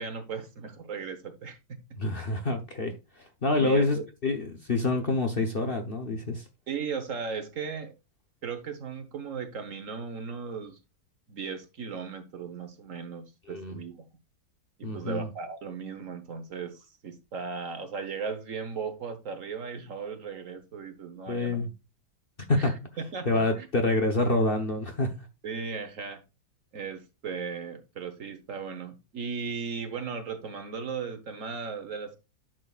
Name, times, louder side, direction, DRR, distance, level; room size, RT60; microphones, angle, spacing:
voice 1, 0.0-1.8 3.6-3.8 6.7-7.9 8.4-10.8 11.3-14.0 14.8-21.6 22.6-23.3 23.5-23.7 25.4-26.2 26.7-32.2, right 5 dB, 55° right, 1.4 m, -37 dB
voice 2, 2.0-2.9 3.4-6.4 13.5-13.8 14.8-15.3 21.3-21.7 22.5-22.7 23.3-25.1, left 2 dB, 40° left, 1.0 m, -27 dB
10.5 x 6.3 x 2.4 m
omnidirectional pair, 1.8 m